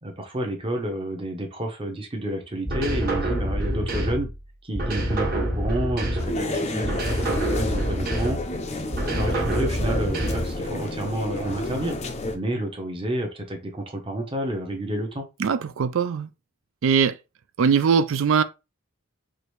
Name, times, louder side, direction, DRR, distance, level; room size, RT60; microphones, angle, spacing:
voice 1, 0.0-4.3 4.6-8.4 9.1-12.0 12.3-15.3, right 1 dB, 25° right, 0.9 m, -30 dB
sound 1, 2.7-4.4 4.7-6.5 6.8-8.5 8.9-10.6, right 1 dB, 40° right, 1.4 m, -26 dB
sound 2, 6.2-12.4, left 2 dB, 30° left, 0.5 m, -30 dB
voice 2, 15.4-16.3 16.8-17.2 17.6-18.4, right 6 dB, 60° right, 0.3 m, -21 dB
4.8 x 2.6 x 3.2 m
head